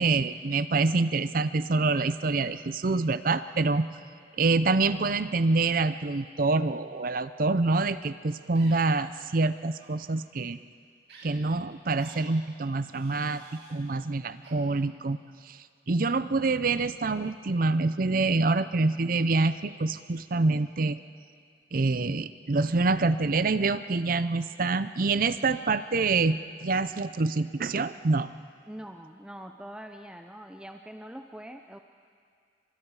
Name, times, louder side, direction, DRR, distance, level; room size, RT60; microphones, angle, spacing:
voice 1, 0.0-3.9 4.4-10.6 11.2-15.2 15.5-15.6 15.9-21.0 21.7-28.3, right 3 dB, 50° right, 13 dB, 0.6 m, -26 dB
sound 1, 8.6-8.8 9.7-9.9 11.1-11.2 12.0-12.2 12.9-13.8 14.4-14.5, right 3 dB, 65° right, 7.6 m, -50 dB
voice 2, 28.7-31.8, equal, 5° right, 5 dB, 0.6 m, -43 dB
30.0 x 25.5 x 4.8 m, 2.2 s
head